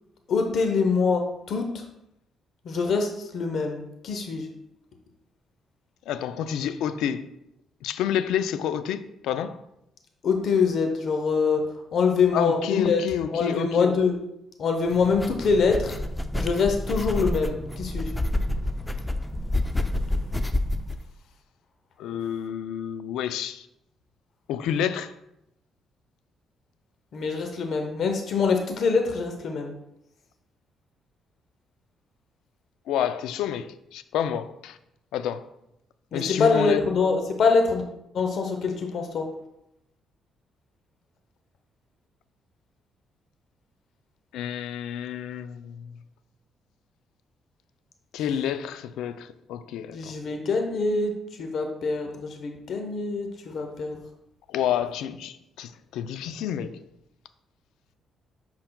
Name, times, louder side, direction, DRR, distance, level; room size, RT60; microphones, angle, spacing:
voice 1, 0.3-1.8 2.7-4.5 10.2-11.6 11.9-13.0 13.3-14.1 14.6-15.9 16.3-18.1 27.1-29.7 36.1-37.8 38.1-39.3 49.9-54.0, left 4 dB, 60° left, 0.7 m, -24 dB
voice 2, 6.1-7.2 7.8-9.6 12.3-13.9 22.0-23.7 24.5-25.1 32.9-34.8 35.1-35.5 36.1-36.8 44.3-46.0 48.1-50.2 54.5-56.8, left 9 dB, 90° left, 0.3 m, -29 dB
sound 1, 14.9-21.0, left 1 dB, 10° left, 0.4 m, -28 dB
7.7 x 5.6 x 2.2 m
cardioid pair, 90°, 0 cm